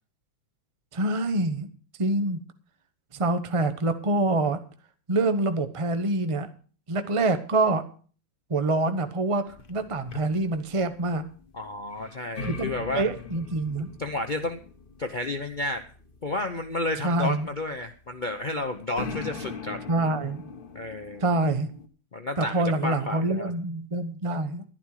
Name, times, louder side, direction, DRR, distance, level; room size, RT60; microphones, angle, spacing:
voice 1, 0.9-1.7 2.0-2.4 3.1-4.6 5.1-6.5 6.9-7.8 8.5-11.2 12.4-13.9 17.0-17.5 19.9-20.5 21.2-21.7 22.4-24.6, right 2 dB, 40° right, 9 dB, 0.4 m, -26 dB
sound 1, 9.5-21.9, left 4 dB, 40° left, 0.8 m, -42 dB
voice 2, 11.5-13.0 14.0-14.6 15.0-15.8 16.2-19.9 20.7-21.2 22.1-23.5, left 2 dB, 85° left, 6 dB, 0.4 m, -31 dB
12.0 x 11.0 x 4.8 m, 0.41 s
omnidirectional pair, 2.3 m